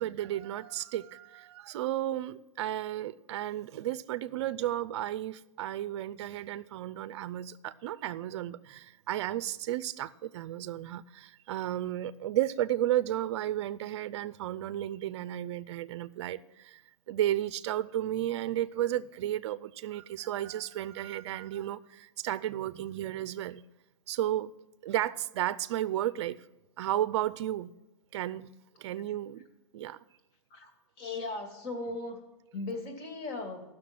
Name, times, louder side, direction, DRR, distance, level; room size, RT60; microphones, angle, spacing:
voice 1, 0.0-16.8 17.1-23.6 24.1-24.5 24.8-26.4 26.8-27.7 28.1-28.5 28.8-29.4 29.7-30.0, right 12 dB, 60° right, 0.5 m, -33 dB
voice 2, 31.0-32.2 32.5-33.6, left 3 dB, 40° left, 2.3 m, -37 dB
14.5 x 6.3 x 5.9 m
hypercardioid pair, 130°, 16 cm